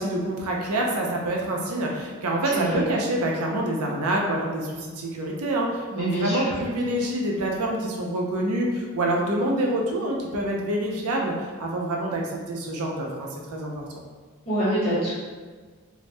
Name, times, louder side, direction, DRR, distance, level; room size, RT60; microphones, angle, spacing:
voice 1, 0.0-13.7, right 1 dB, 85° right, -1 dB, 0.5 m, -26 dB
voice 2, 5.9-6.5 14.4-15.1, right 1 dB, 25° left, -9 dB, 0.9 m, -25 dB
3.2 x 2.0 x 2.6 m, 1.5 s
head